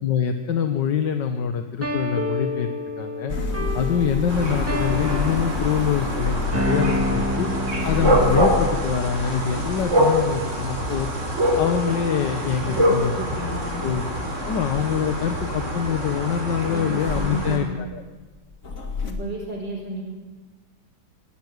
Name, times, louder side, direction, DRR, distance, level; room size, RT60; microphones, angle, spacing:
voice 1, 0.0-2.7 3.0-3.4 3.7-7.5 7.8-11.1 11.6-13.1 13.8-14.0 14.5-18.0, left 8 dB, 80° left, 7 dB, 1.8 m, -25 dB
sound 1, 1.8-8.8, left 1 dB, 10° right, 1.9 m, -29 dB
sound 2, 3.3-12.4 12.7-16.5 17.0-19.1, left 4 dB, 50° left, 2.5 m, -31 dB
sound 3, 4.3-17.6, equal, 40° right, 4.5 m, -25 dB
voice 2, 12.6-13.9 16.6-17.8 19.0-20.0, right 1 dB, 85° right, -6 dB, 5.3 m, -32 dB
26.5 x 13.0 x 9.4 m, 1.3 s
omnidirectional pair, 1.9 m